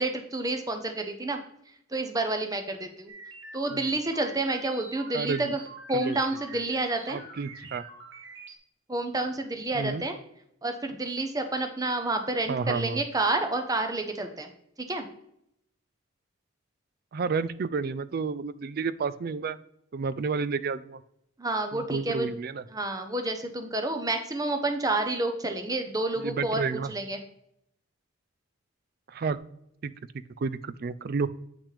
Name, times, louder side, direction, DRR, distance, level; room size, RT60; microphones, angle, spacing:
voice 1, 0.0-1.4 1.9-3.1 3.5-5.6 5.9-7.2 8.9-10.2 10.6-14.5 14.8-15.1 21.4-22.3 22.7-26.6 26.9-27.2, right 2 dB, 15° right, 6 dB, 0.7 m, -29 dB
sound 1, 3.1-8.6, right 3 dB, 60° right, 1.0 m, -45 dB
voice 2, 5.1-5.6 5.9-6.2 7.1-7.9 9.7-10.0 12.5-13.0 17.1-19.6 19.9-21.0 21.7-22.6 26.2-26.9 29.1-29.4 29.8-29.9 30.4-31.3, right 4 dB, 45° right, 16 dB, 0.3 m, -31 dB
8.3 x 6.0 x 3.3 m, 0.75 s
head